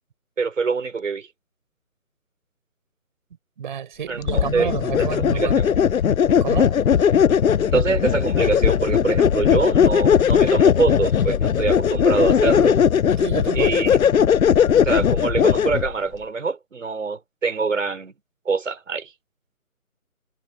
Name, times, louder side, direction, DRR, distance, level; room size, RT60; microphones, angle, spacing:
voice 1, 0.4-1.3 4.1-4.7 5.0-5.1 5.3-5.7 7.6-12.8 13.5-13.9 14.8-18.1 18.5-19.1, right 4 dB, 60° right, 5.3 m, -24 dB
voice 2, 3.6-5.6 6.4-6.8 13.2-13.7, right 8 dB, 35° right, 5.3 m, -29 dB
sound 1, 4.3-15.9, left 8 dB, 70° left, 0.6 m, -18 dB
figure-of-eight pair, 160°, 43 cm